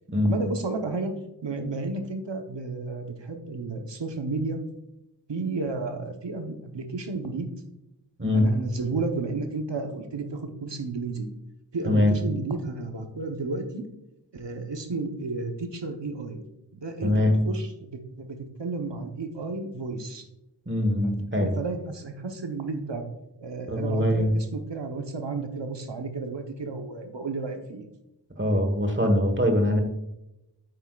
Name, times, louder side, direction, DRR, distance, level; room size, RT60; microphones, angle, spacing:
voice 1, 0.2-1.1 1.4-4.6 5.3-7.5 8.3-11.3 11.7-13.8 14.3-16.4 16.7-20.3 21.0-23.0 23.4-27.9, right 3 dB, 80° right, 5 dB, 1.1 m, -32 dB
voice 2, 8.2-8.5 11.8-12.1 17.0-17.4 20.7-21.5 23.7-24.3 28.4-29.8, left 1 dB, 25° right, 5 dB, 1.5 m, -22 dB
9.0 x 8.0 x 2.4 m, 0.90 s
wide cardioid pair, 55°, 42 cm